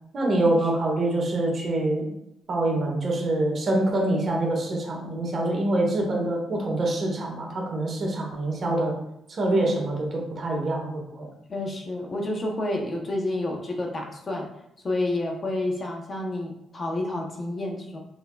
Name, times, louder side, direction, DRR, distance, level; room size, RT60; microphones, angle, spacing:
voice 1, 0.1-2.0 2.5-8.9 9.3-11.3, right 1 dB, 45° right, -1 dB, 1.5 m, -25 dB
voice 2, 11.5-14.5 14.8-18.0, left 1 dB, 35° left, 1 dB, 0.8 m, -29 dB
5.7 x 3.5 x 2.3 m, 0.83 s
cardioid pair, 90°, 0 cm